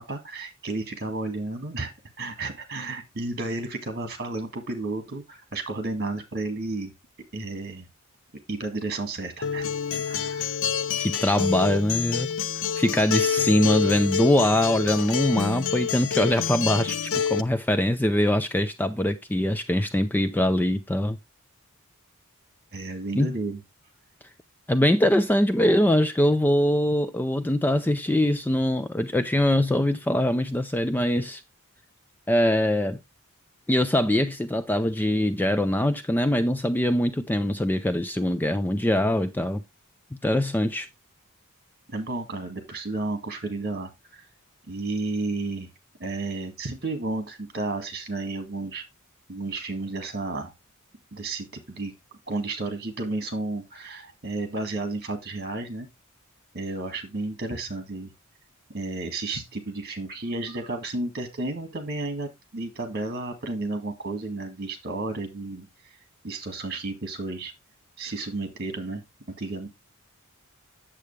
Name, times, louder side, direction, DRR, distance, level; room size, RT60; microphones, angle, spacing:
voice 1, 0.0-6.9 7.3-7.9 8.5-9.7 9.9-10.6 22.7-23.6 41.9-44.2 44.7-45.7 46.0-48.8 49.3-50.5 51.1-51.9 52.3-55.9 56.5-58.1 58.7-65.7 66.2-67.5 68.0-69.0 69.4-69.7, right 2 dB, 45° right, 2.0 m, -32 dB
Acoustic guitar, 9.4-17.4, left 7 dB, 60° left, 0.5 m, -27 dB
voice 2, 11.0-12.3 12.8-21.2 23.2-23.3 24.7-31.4 32.3-33.0 33.7-39.6 40.2-40.9, left 1 dB, 10° left, 0.4 m, -23 dB
8.4 x 7.5 x 3.2 m
head